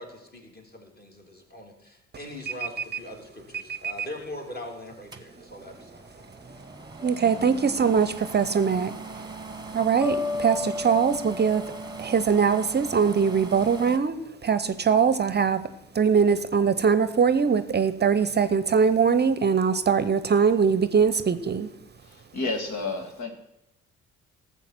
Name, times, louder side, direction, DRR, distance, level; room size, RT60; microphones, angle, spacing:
voice 1, 0.0-6.2, left 1 dB, 30° left, 1 dB, 3.2 m, -41 dB
sound 1, 5.1-14.0, right 3 dB, 15° right, 1.2 m, -40 dB
voice 2, 7.0-8.9 9.7-11.6 12.0-15.6 15.9-21.7, right 6 dB, 35° right, 14 dB, 0.7 m, -22 dB
sound 2, 10.0-13.1, left 4 dB, ahead, 2.3 m, -34 dB
voice 3, 22.0-23.3, left 3 dB, 75° left, 4 dB, 1.9 m, -31 dB
13.0 x 7.1 x 6.0 m, 0.87 s
supercardioid pair, 60°, 30 cm